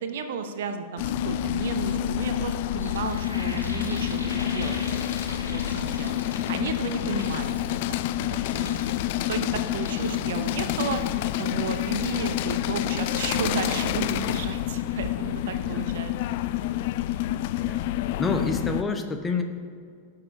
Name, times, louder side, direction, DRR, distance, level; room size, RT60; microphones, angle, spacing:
voice 1, 0.0-5.0 5.3-6.2 6.5-8.9 9.3-16.1, right 5 dB, 55° right, 7 dB, 0.8 m, -33 dB
sound 1, 1.0-18.8, left 12 dB, 50° left, 0.3 m, -28 dB
sound 2, 2.7-6.7 7.0-7.8 8.3-9.2 9.6-12.6 12.9-13.2, equal, 90° right, 1.4 m, -43 dB
voice 2, 17.6-19.4, left 4 dB, 15° left, 5 dB, 0.9 m, -29 dB
17.0 x 6.7 x 2.7 m, 2.1 s
figure-of-eight pair, 90°, 0 cm